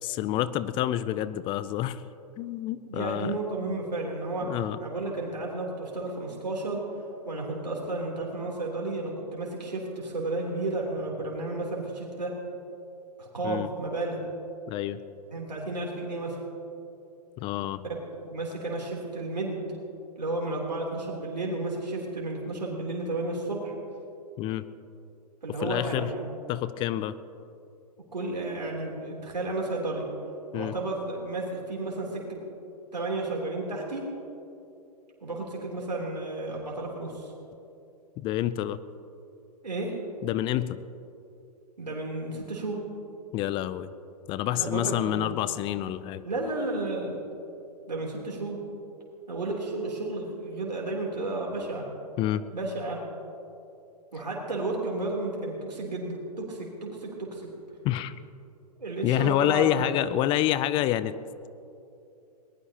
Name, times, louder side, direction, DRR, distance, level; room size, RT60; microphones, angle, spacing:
voice 1, 0.0-2.0 2.4-3.4 4.5-4.8 13.4-13.7 14.7-15.0 17.4-17.8 24.4-24.6 25.6-26.1 26.5-27.1 30.5-30.7 38.2-38.8 40.2-40.8 43.3-43.9 44.3-46.3 52.2-52.4 57.8-58.1 59.0-61.1, left 13 dB, 25° left, 15 dB, 0.4 m, -28 dB
voice 2, 2.8-6.8 7.2-12.3 13.2-14.2 15.3-16.4 18.2-19.7 20.2-23.7 25.4-26.3 28.1-30.1 30.5-32.4 32.9-34.0 35.2-37.3 39.6-39.9 41.8-42.8 44.5-45.3 46.2-47.2 47.9-48.6 49.3-51.8 52.5-53.0 54.1-57.5 58.8-60.0, right 2 dB, 85° right, -3 dB, 3.4 m, -32 dB
22.0 x 19.5 x 2.9 m, 2.8 s
figure-of-eight pair, 115°, 21 cm